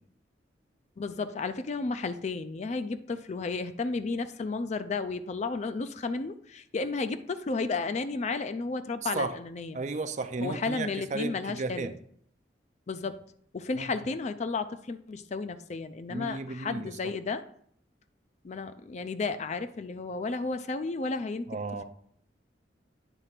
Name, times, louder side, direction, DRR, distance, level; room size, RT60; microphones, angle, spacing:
voice 1, 1.0-9.8 10.4-11.9 12.9-13.2 13.5-17.4 18.4-21.5, left 3 dB, 40° left, 11 dB, 0.4 m, -33 dB
voice 2, 9.0-9.4 9.7-11.9 13.7-13.9 16.1-17.0 21.5-21.8, right 3 dB, 40° right, 10 dB, 0.5 m, -34 dB
9.0 x 3.3 x 5.8 m, 0.63 s
head